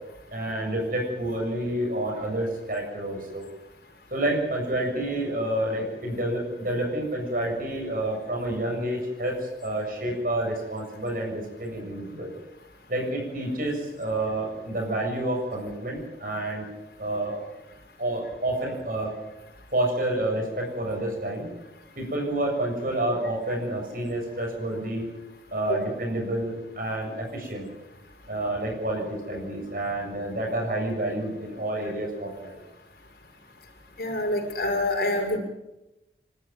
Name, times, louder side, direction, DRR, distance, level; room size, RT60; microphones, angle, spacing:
voice 1, 0.3-3.4 4.1-12.3 12.9-16.7 17.0-17.5 18.0-19.1 19.7-21.5 22.0-25.1 25.5-27.7 28.3-32.6, right 1 dB, 50° right, 0 dB, 7.2 m, -29 dB
voice 2, 34.0-35.4, left 1 dB, 55° left, 1 dB, 6.0 m, -26 dB
29.5 x 13.0 x 9.3 m, 0.97 s
head